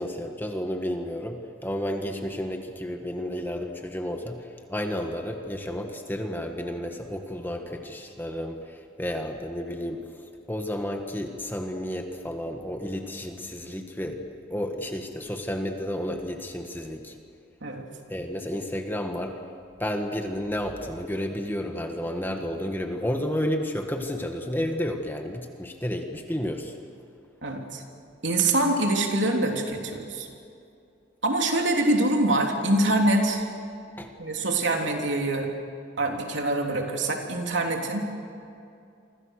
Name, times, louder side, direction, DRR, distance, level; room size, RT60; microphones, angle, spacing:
voice 1, 0.0-10.0 10.5-14.2 14.5-17.2 18.1-19.4 19.8-26.7 34.0-34.1, equal, 10° left, 4 dB, 1.6 m, -31 dB
voice 2, 27.4-27.8 28.2-30.3 31.2-33.4 34.2-35.5 36.0-38.1, right 2 dB, 70° right, 2 dB, 3.3 m, -24 dB
29.5 x 25.0 x 6.6 m, 2.5 s
head